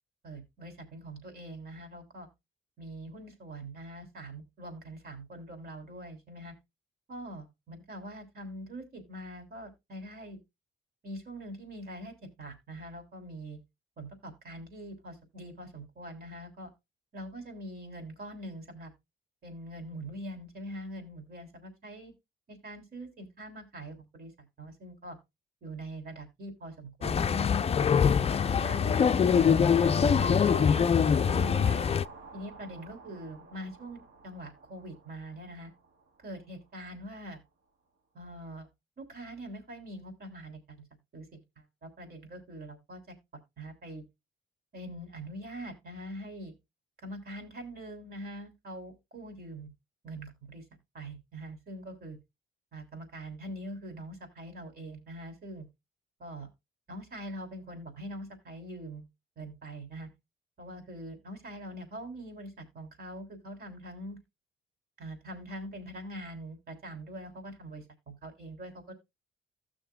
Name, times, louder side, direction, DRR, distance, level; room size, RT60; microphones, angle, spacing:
voice 1, 0.2-2.3 2.8-6.5 7.1-10.4 11.0-13.6 14.0-16.7 17.1-18.9 19.4-22.1 22.5-24.3 24.6-25.2 25.6-27.9 28.5-31.8 32.3-35.7 36.2-37.4 38.1-38.7 39.0-40.8 41.1-41.4 41.8-43.1 43.6-44.0 44.7-46.5 47.0-49.7 50.0-50.6 50.9-52.2 52.7-55.7 56.2-56.5 56.9-59.1 59.4-60.1 60.6-64.2 65.0-68.9, right 1 dB, 50° right, 3.4 m, -43 dB
sound 1, 27.0-32.0, left 7 dB, 30° left, 0.4 m, -24 dB
sound 2, 27.8-36.0, right 4 dB, 80° right, 2.0 m, -46 dB
15.5 x 6.4 x 2.3 m
cardioid pair, 90°, 20 cm